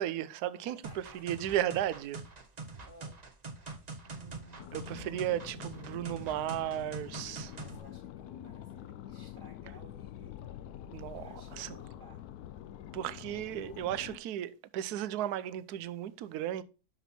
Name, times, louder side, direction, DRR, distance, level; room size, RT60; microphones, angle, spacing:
voice 1, 0.0-0.8 1.2-2.2 4.7-7.5 10.9-11.3 11.6-11.7 12.9-16.6, right 12 dB, 75° right, 1.1 m, -34 dB
voice 2, 0.7-1.2 2.9-3.2 7.5-10.4 11.1-12.3, right 1 dB, 45° right, 2.6 m, -56 dB
sound 1, 0.8-7.8, right 3 dB, 30° right, 0.9 m, -44 dB
sound 2, 3.9-6.9, right 2 dB, 55° left, 1.7 m, -53 dB
sound 3, 4.6-14.2, left 11 dB, 75° left, 1.0 m, -46 dB
7.0 x 6.1 x 4.2 m
omnidirectional pair, 1.7 m